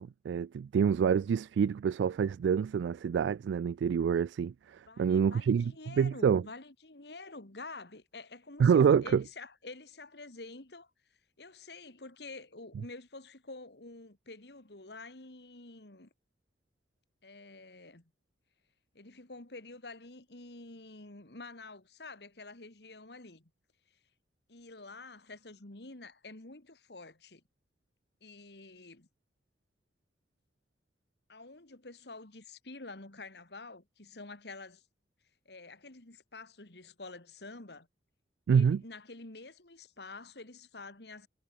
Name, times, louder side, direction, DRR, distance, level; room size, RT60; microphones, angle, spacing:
voice 1, 0.0-6.4 8.6-9.2 38.5-38.8, right 7 dB, 85° right, 0.3 m, -27 dB
voice 2, 4.9-10.9 11.4-16.1 17.2-18.1 18.9-23.5 24.5-27.4 28.2-29.1 31.3-34.8 35.5-37.9 38.5-41.3, left 3 dB, 70° left, 2.3 m, -48 dB
head